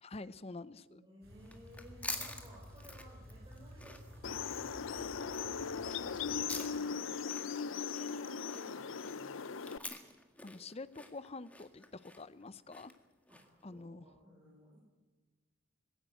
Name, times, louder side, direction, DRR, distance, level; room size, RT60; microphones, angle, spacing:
voice 1, 0.0-1.0 10.4-12.9 13.6-14.1, left 3 dB, 30° left, 16 dB, 0.6 m, -47 dB
voice 2, 0.9-7.2 7.7-9.9 13.3-14.8, right 1 dB, 20° right, -4 dB, 5.4 m, -58 dB
sound 1, 1.2-6.6, equal, 50° right, 6.2 m, -54 dB
sound 2, 1.4-13.6, left 2 dB, 5° left, 1.7 m, -48 dB
sound 3, 4.2-9.8, left 6 dB, 80° left, 0.6 m, -39 dB
20.0 x 16.5 x 9.2 m, 1.3 s
head